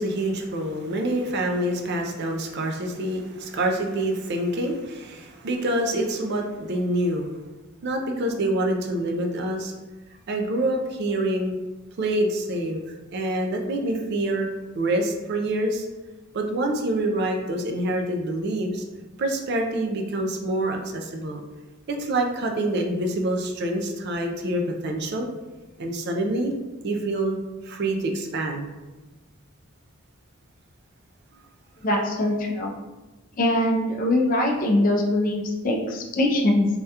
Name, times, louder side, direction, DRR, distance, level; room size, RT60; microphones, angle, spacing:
voice 1, 0.0-7.4 7.8-9.7 10.3-11.6 12.0-12.8 13.1-14.5 14.8-15.9 16.3-18.8 19.2-21.4 21.9-25.3 25.8-26.5 26.8-27.4 27.6-28.7, right 1 dB, 50° right, 3 dB, 0.4 m, -26 dB
voice 2, 31.8-32.7 33.4-36.7, left 1 dB, 40° left, 0 dB, 0.4 m, -22 dB
3.4 x 2.2 x 2.7 m, 1.1 s
head